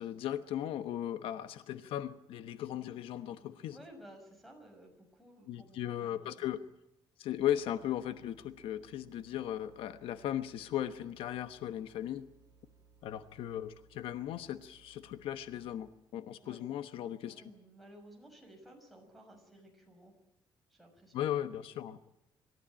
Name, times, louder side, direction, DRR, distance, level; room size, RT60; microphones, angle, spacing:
voice 1, 0.0-3.8 5.5-6.6 7.2-12.2 13.0-17.3 21.1-22.1, left 11 dB, 90° left, 11 dB, 1.1 m, -37 dB
voice 2, 3.7-6.5 16.4-16.6 17.2-20.1 20.7-21.1, right 1 dB, ahead, 4 dB, 6.2 m, -56 dB
sound 1, 7.4-16.1, right 5 dB, 45° right, 1.9 m, -65 dB
25.5 x 14.0 x 8.9 m, 0.86 s
cardioid pair, 155°, 9 cm